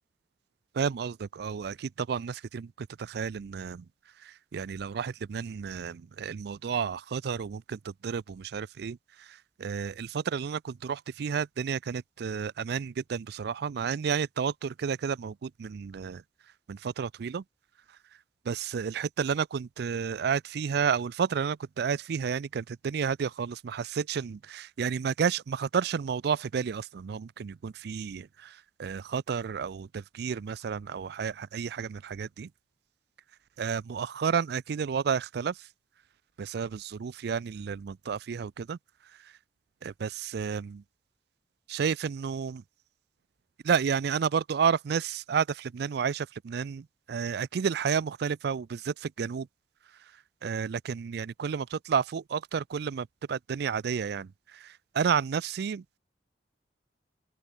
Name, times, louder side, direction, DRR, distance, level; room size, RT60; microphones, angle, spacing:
voice 1, 0.7-3.9 4.2-16.2 16.7-17.4 18.5-32.5 33.6-35.7 36.4-38.8 39.2-39.3 39.8-40.8 41.7-42.6 43.6-49.5 50.4-56.0, right 6 dB, 60° right, 0.4 m, -31 dB
open air
head